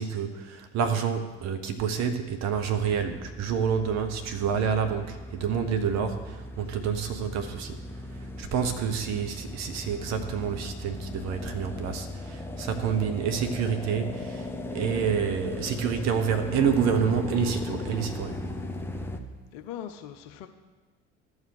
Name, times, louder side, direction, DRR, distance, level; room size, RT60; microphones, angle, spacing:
voice 1, 0.0-7.8 8.1-18.4, right 7 dB, 50° right, 7 dB, 1.1 m, -28 dB
sound 1, 2.5-19.2, left 1 dB, 5° left, 1.1 m, -37 dB
voice 2, 19.5-20.5, left 10 dB, 60° left, 7 dB, 0.8 m, -41 dB
14.5 x 4.8 x 6.7 m, 1.3 s
figure-of-eight pair, 55°, 34 cm